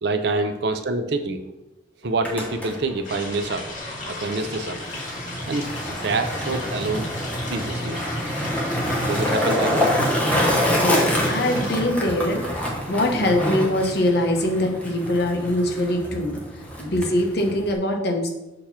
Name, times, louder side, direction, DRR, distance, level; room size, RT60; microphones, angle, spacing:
voice 1, 0.0-1.4 2.0-3.7 4.1-4.8 5.5-7.1 7.5-8.0 9.0-9.9, right 3 dB, 60° right, 7 dB, 0.6 m, -26 dB
Skateboard, 2.0-17.8, equal, 10° left, 0.9 m, -26 dB
sound 1, 3.0-11.8, left 2 dB, 40° left, 1.8 m, -36 dB
voice 2, 10.8-18.3, left 1 dB, 60° left, 2 dB, 1.0 m, -23 dB
6.6 x 2.9 x 5.6 m, 0.95 s
head